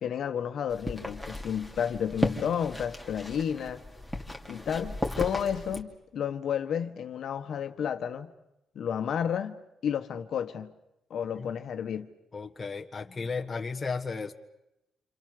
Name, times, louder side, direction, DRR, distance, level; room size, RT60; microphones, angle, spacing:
voice 1, 0.0-3.8 4.5-8.3 8.7-10.7 11.1-12.1, left 8 dB, 60° left, 1.6 m, -31 dB
sound 1, 0.7-5.8, left 1 dB, ahead, 2.8 m, -35 dB
voice 2, 12.3-14.3, left 4 dB, 25° left, 1.5 m, -34 dB
28.5 x 26.5 x 6.9 m
cardioid pair, 125°, 0 cm